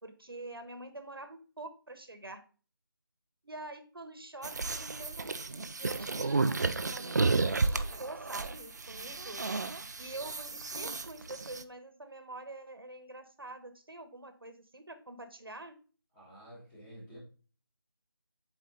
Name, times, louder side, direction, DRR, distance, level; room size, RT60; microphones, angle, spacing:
voice 1, 0.0-2.4 3.4-9.4 10.0-15.7, right 2 dB, 70° right, 9 dB, 1.2 m, -46 dB
sound 1, 4.4-11.6, right 3 dB, 45° right, 0.5 m, -32 dB
voice 2, 16.1-17.2, equal, 10° left, -6 dB, 1.8 m, -50 dB
7.2 x 4.4 x 3.7 m, 0.38 s
figure-of-eight pair, 160°, 13 cm